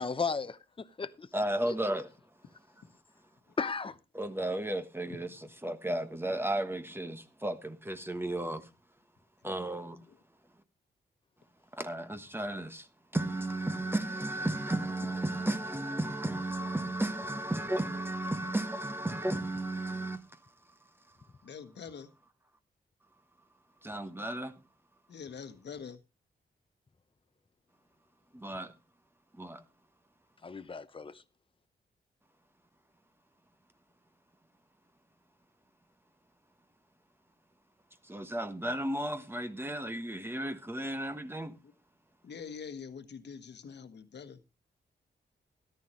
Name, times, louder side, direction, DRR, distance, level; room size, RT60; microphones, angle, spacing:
voice 1, 0.0-1.3 1.7-1.8 3.6-4.0 30.4-31.2, left 5 dB, 30° left, 0.8 m, -35 dB
voice 2, 1.3-2.1 4.1-5.3 5.6-8.7 9.4-10.0 11.8-12.9 13.1-20.4 23.8-24.5 28.3-28.7 29.4-29.6 38.0-41.6, right 1 dB, 10° right, 1.2 m, -34 dB
voice 3, 5.0-5.4 10.0-10.2 15.0-15.1 21.4-22.1 25.1-26.0 41.6-41.7 42.2-44.4, left 6 dB, 75° left, 1.3 m, -45 dB
13.5 x 11.5 x 3.1 m
cardioid pair, 75°, 18 cm